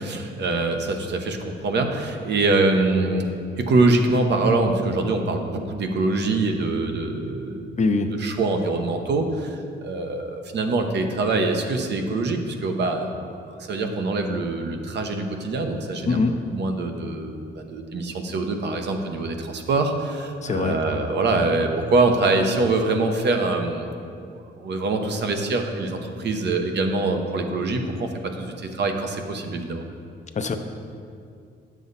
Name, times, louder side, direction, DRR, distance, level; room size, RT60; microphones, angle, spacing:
voice 1, 0.0-3.3 3.6-7.7 8.2-13.2 13.5-16.2 16.5-28.1 28.4-29.8, right 3 dB, 60° right, 4 dB, 1.0 m, -24 dB
voice 2, 7.8-8.1 16.1-16.4 20.4-20.8 30.4-30.6, left 3 dB, 35° left, 7 dB, 0.7 m, -22 dB
9.3 x 7.3 x 4.1 m, 2.4 s
cardioid pair, 90°, 20 cm